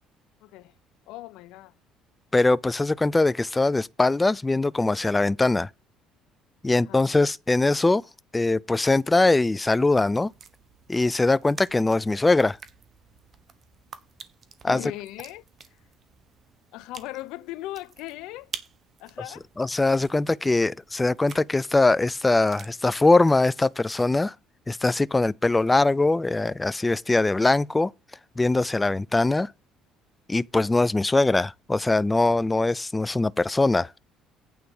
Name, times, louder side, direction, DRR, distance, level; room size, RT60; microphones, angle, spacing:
voice 1, 0.4-0.7 1.1-1.7 6.7-7.0 14.7-15.4 16.7-18.5 19.0-19.5, left 17 dB, 80° left, 0.6 m, -38 dB
voice 2, 2.3-5.7 6.6-8.0 8.3-10.3 10.9-12.6 14.6-14.9 19.6-24.3 24.7-27.9 28.4-29.5 30.3-33.9, left 2 dB, 15° left, 0.4 m, -22 dB
sound 1, 9.9-24.1, right 6 dB, 40° right, 1.2 m, -48 dB
9.0 x 4.6 x 7.0 m
supercardioid pair, 95°, 0 cm